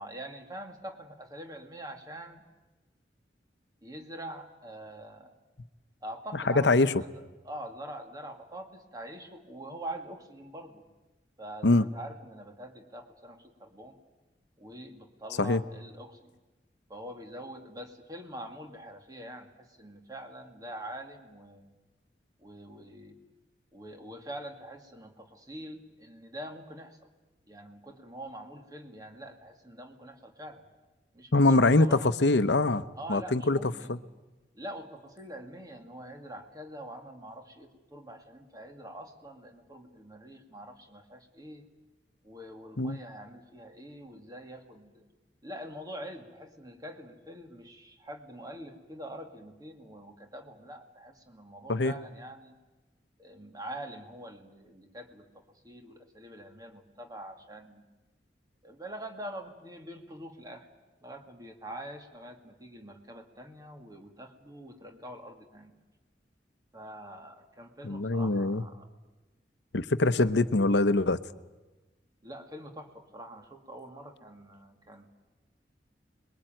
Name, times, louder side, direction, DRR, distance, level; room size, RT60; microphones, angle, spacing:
voice 1, 0.0-2.4 3.8-5.3 6.0-10.8 11.4-14.0 14.6-16.3 16.9-21.7 22.4-23.2 23.7-27.1 27.5-30.6 31.1-32.1 33.0-34.0 34.5-41.6 42.2-45.1 45.4-52.6 53.2-57.8 58.6-60.7 61.0-65.7 66.7-68.9 72.2-75.1, right 1 dB, 20° right, 4 dB, 2.3 m, -44 dB
voice 2, 6.5-6.9 11.6-11.9 15.4-15.6 31.3-33.6 33.9-34.0 42.8-43.0 51.7-51.9 67.8-68.6 69.7-71.2, left 2 dB, 75° left, 12 dB, 0.9 m, -23 dB
26.5 x 21.5 x 9.1 m, 1.1 s
head